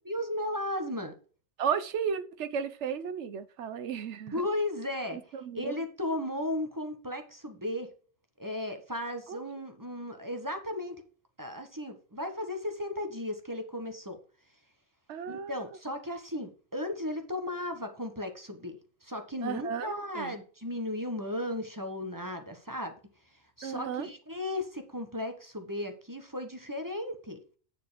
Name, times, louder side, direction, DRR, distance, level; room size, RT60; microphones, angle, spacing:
voice 1, 0.1-1.1 4.3-7.9 8.4-11.0 11.4-14.2 15.3-22.9 23.6-27.4, left 1 dB, 20° right, 1.0 m, -35 dB
voice 2, 1.6-4.3 5.1-5.8 9.3-9.4 15.1-15.5 19.4-20.3 23.6-24.1, right 7 dB, 75° right, 1.0 m, -34 dB
9.3 x 4.3 x 4.9 m
omnidirectional pair, 1.2 m